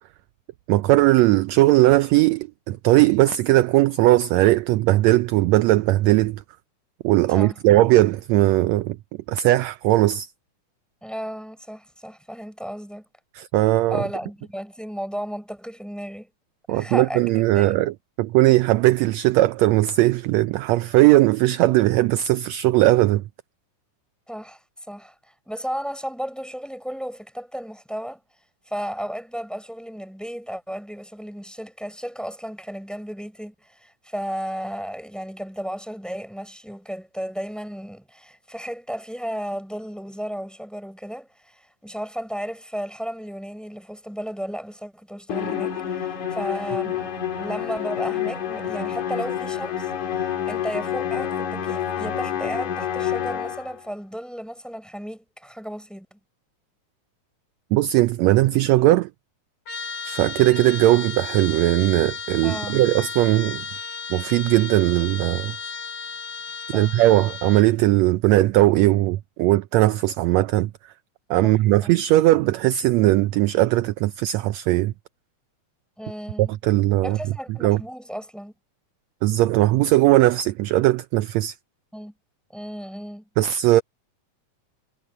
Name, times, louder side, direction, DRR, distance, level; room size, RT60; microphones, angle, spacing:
voice 1, 0.7-6.4 7.0-9.0 9.3-10.3 13.4-14.0 16.7-23.2 57.7-59.1 60.1-63.7 64.1-65.6 66.7-70.7 71.3-74.9 76.4-77.2 77.6-77.8 79.2-81.6 83.4-83.8, right 16 dB, 80° right, 1.6 m, -19 dB
voice 2, 7.3-7.6 11.0-13.0 13.9-16.3 16.7-17.7 24.3-28.2 28.7-56.2 62.4-62.8 66.7-67.0 71.4-71.9 76.0-76.5 77.0-78.5 81.9-82.1 82.5-83.3, equal, ahead, 6.7 m, -34 dB
Musical instrument, 45.3-53.8, left 9 dB, 70° left, 3.8 m, -28 dB
Trumpet, 59.7-67.7, left 5 dB, 50° left, 3.0 m, -34 dB
omnidirectional pair, 3.6 m